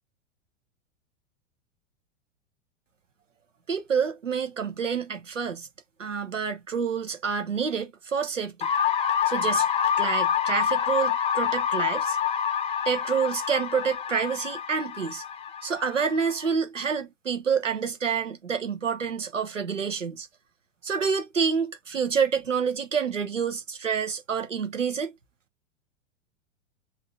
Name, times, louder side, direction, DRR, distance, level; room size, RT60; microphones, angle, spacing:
voice 1, 3.7-5.7 6.0-8.7 9.3-9.7 10.0-12.2 12.8-15.2 15.6-20.3 20.8-25.1, right 6 dB, 85° right, 1.0 m, -28 dB
sound 1, 8.6-16.5, left 8 dB, 15° left, 0.6 m, -27 dB
3.6 x 2.8 x 3.6 m
figure-of-eight pair, 100°, 36 cm